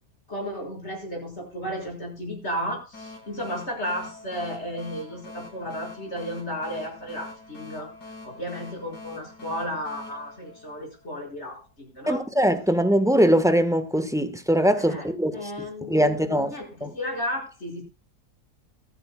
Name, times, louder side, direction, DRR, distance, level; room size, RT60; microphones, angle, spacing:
voice 1, 0.3-7.9 8.2-12.2 14.8-15.1 15.3-17.8, equal, 40° left, 6.0 m, -33 dB
sound 1, 2.9-11.3, left 3 dB, 75° left, 6.3 m, -44 dB
voice 2, 12.1-16.5 16.8-16.9, equal, ahead, 1.0 m, -22 dB
22.5 x 10.5 x 2.3 m
omnidirectional pair, 1.7 m